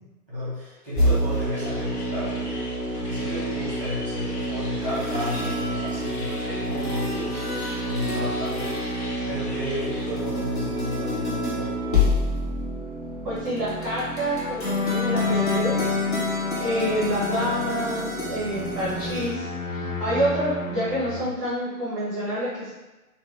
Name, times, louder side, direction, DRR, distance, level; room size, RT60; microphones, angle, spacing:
voice 1, 0.3-2.6 2.9-11.7, left 1 dB, 5° left, -11 dB, 0.9 m, -33 dB
sound 1, 1.0-19.2, equal, 35° left, 0.9 m, -28 dB
sound 2, 1.3-10.2, left 1 dB, 85° left, 1.0 m, -40 dB
voice 2, 13.2-16.0 16.6-22.7, equal, 15° right, -10 dB, 0.5 m, -28 dB
sound 3, 14.6-21.2, left 4 dB, 60° left, 0.6 m, -29 dB
3.6 x 2.2 x 3.1 m, 1.1 s
figure-of-eight pair, 130°, 45 cm